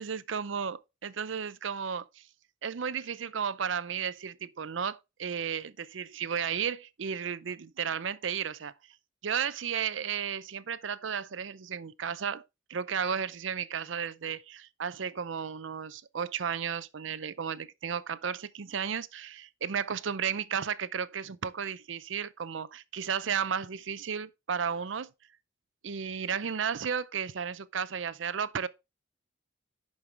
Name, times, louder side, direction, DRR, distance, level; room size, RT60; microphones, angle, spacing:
voice 1, 0.0-2.2 2.6-8.7 9.2-12.4 12.7-25.1 25.8-28.7, right 7 dB, 75° right, 0.6 m, -33 dB
11.0 x 5.4 x 3.3 m
head